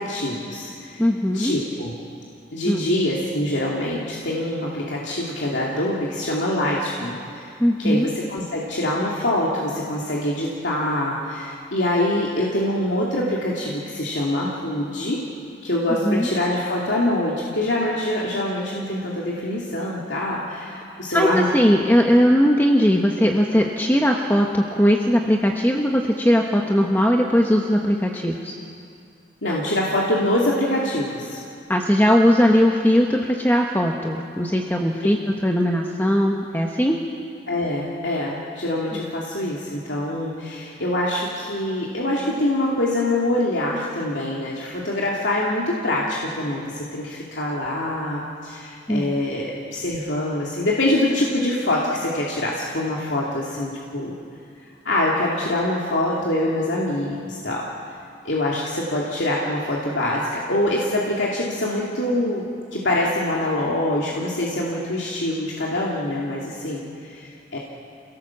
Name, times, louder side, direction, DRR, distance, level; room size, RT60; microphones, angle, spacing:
voice 1, 0.0-1.0 1.3-1.9 2.5-7.5 7.8-15.2 15.6-21.5 29.4-31.4 37.5-54.1 54.8-57.7 58.2-67.6, left 1 dB, 80° left, -4 dB, 2.7 m, -24 dB
voice 2, 1.0-1.6 2.7-2.8 7.6-8.1 16.0-16.3 21.1-28.6 31.7-37.0 48.9-49.0, equal, 10° left, 1 dB, 1.0 m, -19 dB
27.0 x 18.0 x 7.3 m, 2.4 s
head